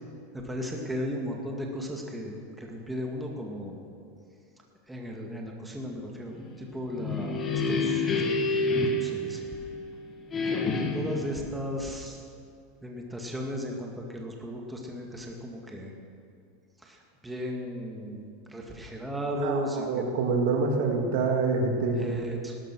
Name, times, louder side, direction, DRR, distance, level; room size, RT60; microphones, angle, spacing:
voice 1, 0.3-3.8 4.9-8.0 8.9-9.5 10.4-12.2 12.8-16.0 16.8-20.0 21.9-22.6, equal, 5° right, 0 dB, 2.1 m, -36 dB
sound 1, 6.8-9.9 10.3-11.3, left 3 dB, 20° left, 2.0 m, -28 dB
voice 2, 19.4-22.2, right 4 dB, 65° right, 2 dB, 2.4 m, -26 dB
17.5 x 13.0 x 6.3 m, 2.4 s
supercardioid pair, 140°, 0 cm